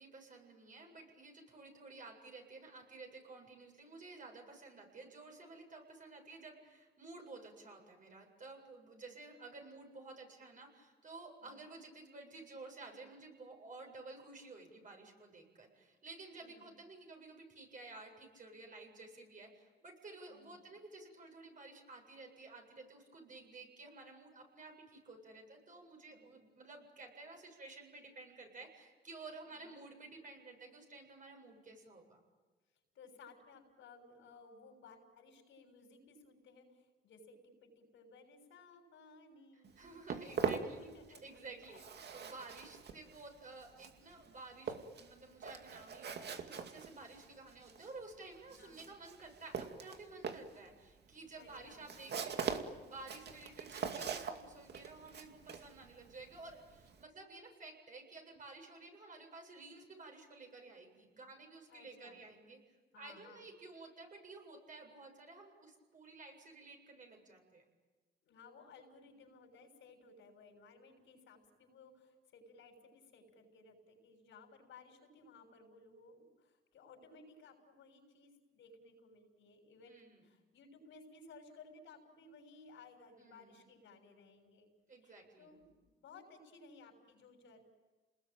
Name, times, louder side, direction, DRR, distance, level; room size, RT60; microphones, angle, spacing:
voice 1, 0.0-32.2 39.8-40.9 41.2-67.6 79.9-80.3 83.2-83.6 84.9-85.6, right 3 dB, 40° right, 2 dB, 7.9 m, -53 dB
voice 2, 16.3-16.7 20.3-20.6 26.1-26.3 29.4-29.7 32.9-41.8 42.6-42.7 48.5-48.8 51.3-51.8 61.7-62.2 62.9-63.5 68.2-79.9 80.2-84.7 85.0-87.6, left 3 dB, 75° left, 4 dB, 6.5 m, -59 dB
Walk footsteps, 39.6-41.4 41.6-57.0, right 6 dB, 60° right, 2.3 m, -42 dB
29.0 x 20.5 x 9.1 m, 1.3 s
cardioid pair, 90°, 20 cm